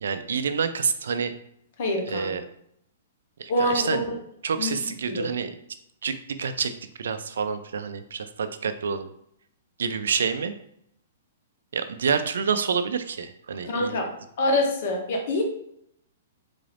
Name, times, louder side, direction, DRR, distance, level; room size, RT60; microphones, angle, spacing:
voice 1, 0.0-1.3 2.1-2.4 3.4-4.0 4.4-5.5 6.0-6.7 7.0-9.1 9.8-10.5 11.7-14.0, right 6 dB, 85° right, 10 dB, 0.4 m, -28 dB
voice 2, 1.8-2.3 3.5-4.2 4.6-4.8 5.1-5.3 13.6-14.1 14.4-15.4, left 1 dB, 40° left, 1 dB, 0.8 m, -25 dB
3.9 x 2.5 x 3.3 m, 0.73 s
hypercardioid pair, 180°, 0 cm